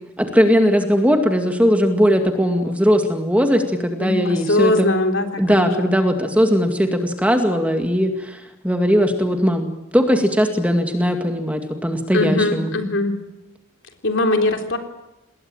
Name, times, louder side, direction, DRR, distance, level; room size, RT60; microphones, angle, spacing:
voice 1, 0.2-4.9 5.4-12.7, equal, 5° right, 5 dB, 2.2 m, -19 dB
voice 2, 4.0-5.9 12.1-13.1 14.0-14.8, left 2 dB, 60° left, 5 dB, 3.7 m, -21 dB
27.5 x 20.5 x 9.0 m, 0.97 s
head